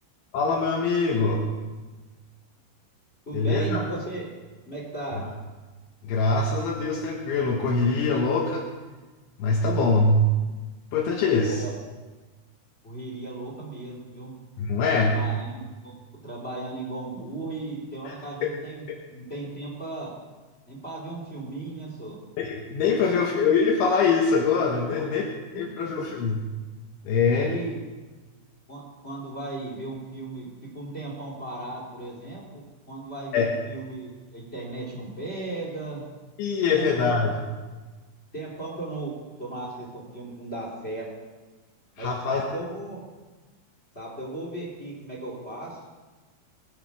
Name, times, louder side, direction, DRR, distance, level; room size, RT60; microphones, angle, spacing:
voice 1, 0.3-1.5 3.3-3.8 6.0-8.6 9.4-10.3 10.9-11.6 14.6-15.2 18.1-18.2 18.4-18.5 18.9-19.0 22.4-25.3 25.6-26.4 27.1-27.5 33.3-33.5 36.4-37.4 42.0-42.4, left 4 dB, 75° left, -1 dB, 3.6 m, -23 dB
voice 2, 3.3-4.3 4.6-5.2 11.4-11.7 12.8-14.3 14.9-15.9 16.2-20.1 20.7-22.2 23.0-23.3 24.8-25.1 25.5-26.1 27.3-27.7 28.7-30.5 30.7-36.0 36.7-37.3 38.3-41.1 42.0-43.0 43.9-45.8, right 2 dB, 20° left, -2 dB, 1.9 m, -36 dB
21.5 x 10.0 x 4.8 m, 1.3 s
omnidirectional pair, 5.8 m